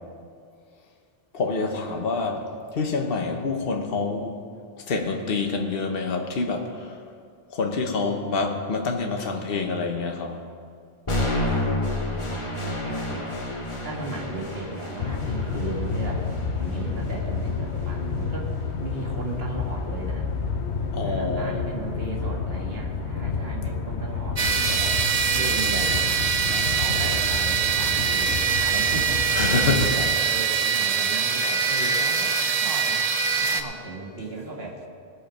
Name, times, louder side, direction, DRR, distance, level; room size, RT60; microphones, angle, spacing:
voice 1, 1.3-4.4 4.9-6.9 7.5-10.4 20.9-21.6 29.3-30.3, left 4 dB, 60° left, 3 dB, 1.3 m, -27 dB
voice 2, 8.0-8.7 11.2-13.4 13.7-16.3 16.6-18.5 18.8-20.3 21.0-25.0 25.3-26.0 26.5-33.0 33.4-34.8, right 3 dB, 65° right, -1 dB, 2.0 m, -36 dB
sound 1, 11.1-19.1, left 1 dB, 30° left, 1.3 m, -31 dB
sound 2, 15.0-30.1, left 5 dB, 85° left, 1.2 m, -30 dB
sound 3, 24.4-33.6, right 6 dB, 40° right, 0.7 m, -23 dB
19.0 x 6.5 x 5.1 m, 2.2 s
omnidirectional pair, 1.1 m